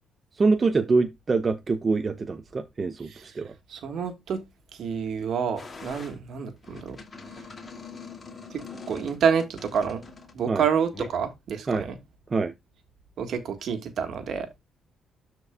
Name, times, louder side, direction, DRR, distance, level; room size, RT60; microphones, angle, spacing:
voice 1, 0.4-3.5 10.5-10.6 11.7-11.8 12.3-12.5, right 4 dB, 35° right, 0.7 m, -25 dB
voice 2, 3.1-3.4 3.7-4.4 4.7-7.0 8.5-10.0 10.3-12.0 13.2-14.5, right 7 dB, 65° right, 1.7 m, -28 dB
sound 1, 5.6-6.2 6.6-10.4 10.9-11.1, left 4 dB, 35° left, 2.4 m, -43 dB
13.0 x 4.6 x 2.3 m
cardioid pair, 90°, 0 cm